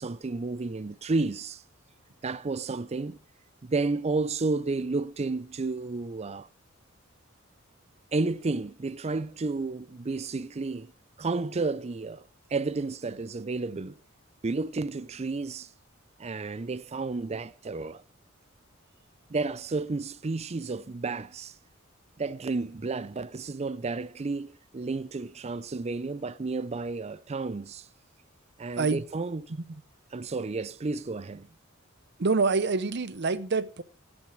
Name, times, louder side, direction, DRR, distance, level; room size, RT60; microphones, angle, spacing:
voice 1, 0.0-1.6 2.2-3.2 3.6-6.5 8.1-10.9 11.2-12.2 12.5-14.0 14.4-15.7 16.2-18.0 19.3-21.5 22.2-27.9 28.6-29.5 30.1-31.5, right 3 dB, 30° right, 0.5 m, -31 dB
voice 2, 32.2-33.8, right 4 dB, 55° right, 0.8 m, -26 dB
16.5 x 6.2 x 6.3 m
head